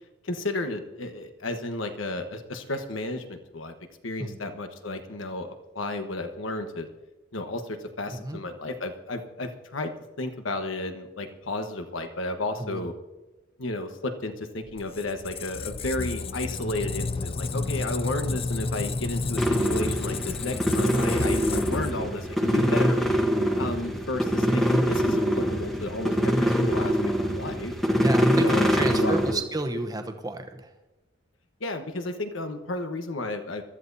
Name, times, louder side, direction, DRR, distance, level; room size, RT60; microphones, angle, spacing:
voice 1, 0.2-3.7 4.0-6.9 7.3-9.9 10.2-12.9 13.6-23.0 23.6-27.0 27.3-27.7 28.3-29.4 31.6-33.6, left 2 dB, 85° left, 7 dB, 1.2 m, -33 dB
voice 2, 8.1-8.4 12.6-12.9 28.0-30.7, right 2 dB, 20° right, 6 dB, 0.9 m, -32 dB
Squeak, 14.7-22.4, left 3 dB, 30° left, 0.4 m, -31 dB
sound 1, 19.4-29.3, equal, ahead, 1.1 m, -24 dB
22.5 x 13.5 x 2.7 m, 1.1 s
head